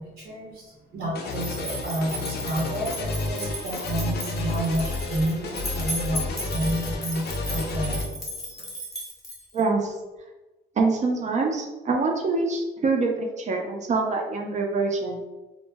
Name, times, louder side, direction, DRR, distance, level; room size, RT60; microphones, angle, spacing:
voice 1, 0.0-8.1 8.6-8.7, right 1 dB, 75° right, -5 dB, 0.7 m, -30 dB
sound 1, 1.1-8.0, left 3 dB, 60° left, 0.4 m, -31 dB
sound 2, 1.3-9.6, equal, ahead, 0.8 m, -36 dB
voice 2, 9.5-9.9 10.8-15.2, right 3 dB, 40° right, 1 dB, 0.4 m, -25 dB
2.1 x 2.0 x 3.2 m, 1.1 s
cardioid pair, 125°, 19 cm